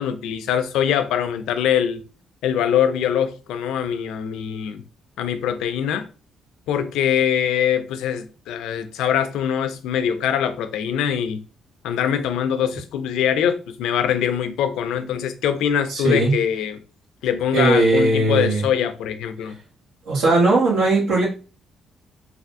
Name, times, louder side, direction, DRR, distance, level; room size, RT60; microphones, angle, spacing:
voice 1, 0.0-2.0 2.4-4.8 5.2-6.0 6.7-11.4 11.8-16.8 17.2-19.6, left 9 dB, 90° left, 0.3 m, -23 dB
voice 2, 15.9-16.3 17.5-18.6 20.1-21.3, right 2 dB, 85° right, 1.2 m, -18 dB
3.3 x 2.3 x 2.5 m
cardioid pair, 90°, 0 cm